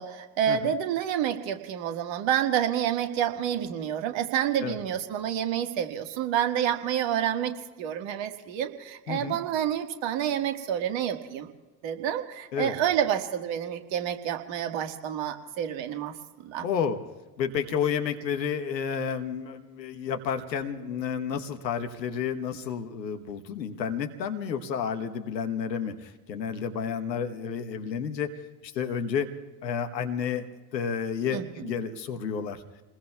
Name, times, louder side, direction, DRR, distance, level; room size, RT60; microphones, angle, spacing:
voice 1, 0.0-11.5 11.8-16.1 16.4-16.7 31.3-31.5, right 10 dB, 60° right, 6 dB, 1.8 m, -28 dB
voice 2, 9.1-9.4 12.5-12.8 16.6-17.0 17.4-28.3 28.6-29.3 29.6-30.5 30.7-32.6, left 7 dB, 90° left, 7 dB, 1.2 m, -31 dB
29.5 x 20.5 x 2.4 m, 1.2 s
hypercardioid pair, 60°, 49 cm